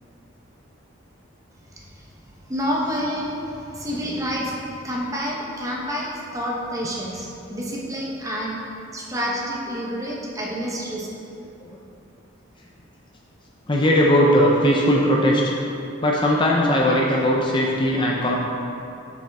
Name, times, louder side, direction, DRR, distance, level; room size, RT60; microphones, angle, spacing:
voice 1, 2.5-4.6 4.8-8.6 8.9-11.1, equal, 15° right, -3 dB, 0.9 m, -28 dB
voice 2, 13.7-15.5 16.0-18.4, equal, 25° left, -2 dB, 0.6 m, -19 dB
7.1 x 6.9 x 3.5 m, 2.7 s
head